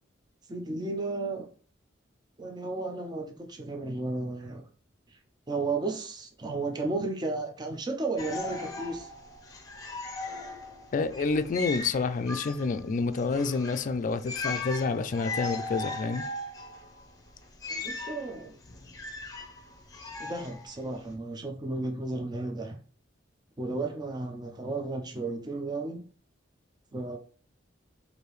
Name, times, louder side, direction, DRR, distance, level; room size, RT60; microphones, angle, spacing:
voice 1, 0.5-1.5 2.4-4.7 5.5-9.1 17.7-18.6 20.2-22.8 23.6-26.1 26.9-27.2, right 3 dB, 20° right, 0.5 m, -33 dB
sound 1, 8.2-21.1, left 3 dB, 20° left, 0.8 m, -38 dB
voice 2, 10.9-16.3, left 4 dB, 45° left, 0.3 m, -28 dB
4.8 x 2.6 x 3.1 m
head